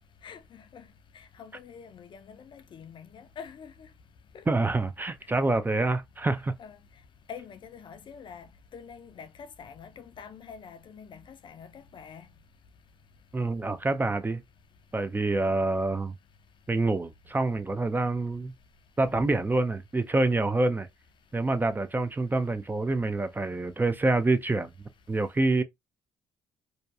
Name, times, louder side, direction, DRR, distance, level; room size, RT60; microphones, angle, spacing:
voice 1, 0.2-0.9 1.1-3.7 4.3-4.4 6.6-6.8 7.3-12.3 19.0-19.3, left 6 dB, 50° left, 0.5 m, -46 dB
voice 2, 4.5-6.5 13.3-14.4 14.9-16.1 16.7-18.5 19.0-20.9 21.3-24.7 25.1-25.6, right 2 dB, 20° right, 0.4 m, -26 dB
2.7 x 2.2 x 2.3 m
hypercardioid pair, 55°, 11 cm